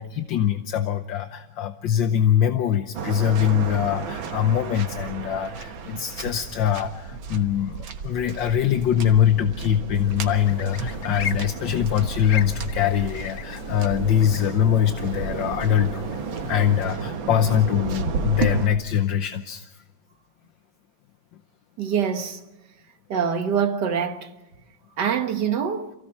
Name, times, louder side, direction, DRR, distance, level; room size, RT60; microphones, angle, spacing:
voice 1, 0.0-16.0 16.5-19.7, left 10 dB, 75° left, 1.6 m, -23 dB
Waves surf, 2.9-18.7, right 5 dB, 90° right, 2.2 m, -32 dB
sound 1, 10.4-16.9, left 7 dB, 55° left, 1.0 m, -38 dB
voice 2, 21.8-22.4 23.1-24.3 25.0-25.9, right 7 dB, 65° right, 1.9 m, -24 dB
28.0 x 16.5 x 5.9 m
omnidirectional pair, 2.1 m